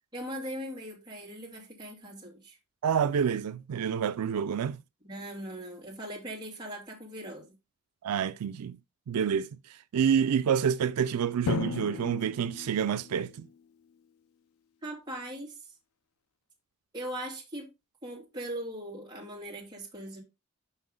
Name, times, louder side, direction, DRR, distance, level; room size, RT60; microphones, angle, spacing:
voice 1, 0.1-2.6 5.0-7.6 14.8-15.6 16.9-17.7 18.0-20.2, right 1 dB, 20° right, 2.4 m, -40 dB
voice 2, 2.8-4.8 8.0-8.8 9.1-13.5, right 7 dB, 90° right, 0.4 m, -28 dB
Drum, 11.5-14.0, left 6 dB, 70° left, 0.4 m, -36 dB
5.7 x 5.6 x 3.6 m
head